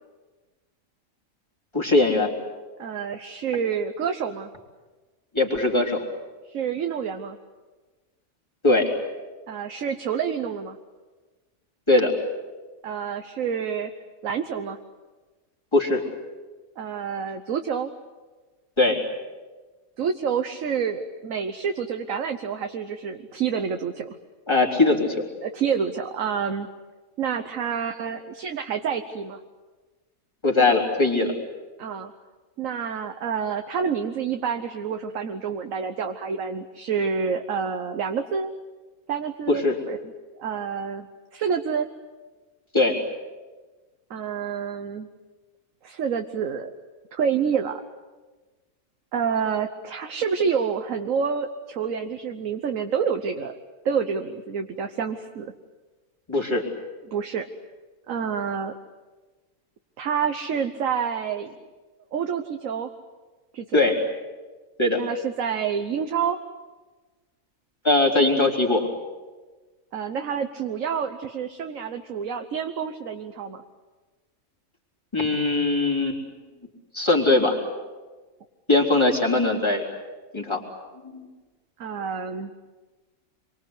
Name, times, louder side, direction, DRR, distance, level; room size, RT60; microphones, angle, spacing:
voice 1, 1.7-2.3 5.3-6.0 8.6-8.9 11.9-12.1 15.7-16.0 18.8-19.0 24.5-25.2 30.4-31.3 39.5-39.8 42.7-43.0 56.3-56.7 63.7-64.0 64.8-65.0 67.8-68.9 75.1-76.2 76.9-77.6 78.7-79.8 80.3-80.6 81.1-81.3, left 2 dB, 20° left, -1 dB, 3.9 m, -20 dB
voice 2, 2.8-4.5 6.5-7.4 9.5-10.8 12.8-13.9 14.2-14.8 16.8-17.9 20.0-24.2 25.4-26.7 27.2-29.4 31.8-32.1 32.6-38.5 39.1-40.1 40.4-41.9 44.1-45.1 45.8-46.7 47.1-47.8 49.1-53.5 53.8-55.5 57.1-57.5 58.1-58.7 60.0-61.6 62.1-62.9 63.5-63.9 64.9-66.4 69.9-73.6 81.8-82.5, right 6 dB, 70° right, 6 dB, 1.4 m, -28 dB
27.0 x 24.0 x 8.2 m, 1.3 s
omnidirectional pair, 1.5 m